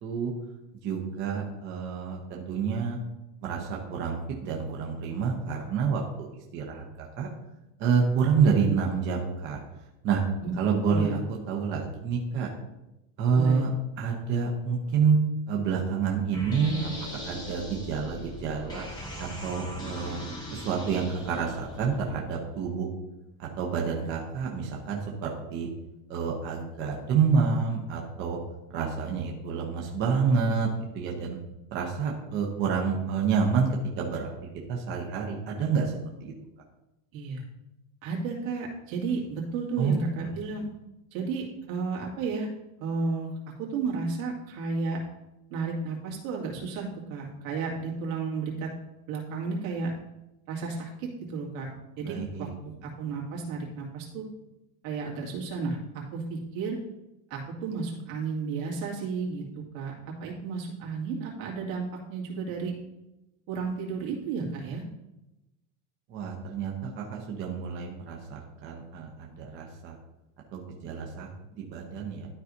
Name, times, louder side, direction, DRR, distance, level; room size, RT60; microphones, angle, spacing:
voice 1, 0.0-0.3 0.8-3.0 3.4-7.3 7.8-9.6 10.0-10.2 10.6-11.2 11.5-12.5 13.2-13.7 14.0-15.2 15.5-16.9 17.2-18.9 19.4-20.2 20.5-22.9 23.4-25.7 26.1-28.4 28.7-31.4 31.7-33.7 34.0-34.3 34.7-35.9 36.2-36.3 39.8-40.0 52.0-52.5 66.1-69.9 70.5-72.3, right 6 dB, 25° right, -1 dB, 0.8 m, -28 dB
voice 2, 10.9-11.2 13.3-13.7 37.1-37.4 38.0-40.7 41.1-42.5 42.8-43.3 43.6-45.0 45.5-48.7 49.1-49.9 50.5-51.7 52.0-54.2 54.8-56.8 57.3-62.7 63.5-64.8, right 4 dB, 70° right, -2 dB, 2.3 m, -33 dB
sound 1, 16.3-22.2, left 1 dB, 10° left, 0.9 m, -39 dB
12.0 x 4.8 x 2.7 m, 0.94 s
supercardioid pair, 180°, 42 cm